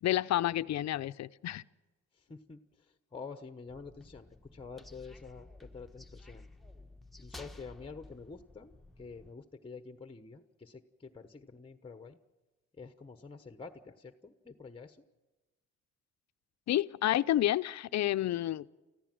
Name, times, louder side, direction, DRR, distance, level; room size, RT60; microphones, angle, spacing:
voice 1, 0.0-1.6 16.7-18.7, left 13 dB, 65° left, 15 dB, 0.6 m, -30 dB
voice 2, 2.1-6.5 7.2-12.2 12.8-15.0, left 4 dB, 15° left, 9 dB, 1.1 m, -48 dB
sound 1, 3.7-9.3, left 2 dB, ahead, 1.2 m, -53 dB
29.0 x 15.0 x 7.6 m, 1.2 s
cardioid pair, 90°, 30 cm